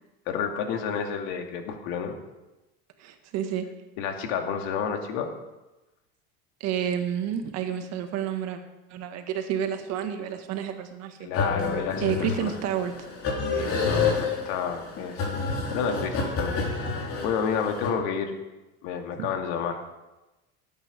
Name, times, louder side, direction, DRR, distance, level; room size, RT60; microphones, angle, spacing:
voice 1, 0.3-2.2 4.0-5.3 11.2-12.5 13.5-15.2 15.7-16.6 17.2-18.3 18.8-19.8, left 7 dB, 70° left, 4 dB, 2.3 m, -30 dB
voice 2, 3.0-3.7 6.6-8.6 8.9-11.3 12.0-12.9 19.2-19.3, right 9 dB, 55° right, 6 dB, 1.8 m, -30 dB
sound 1, 11.3-17.9, left 4 dB, 45° left, 3.8 m, -29 dB
18.0 x 9.1 x 5.3 m, 1.0 s
supercardioid pair, 130°, 32 cm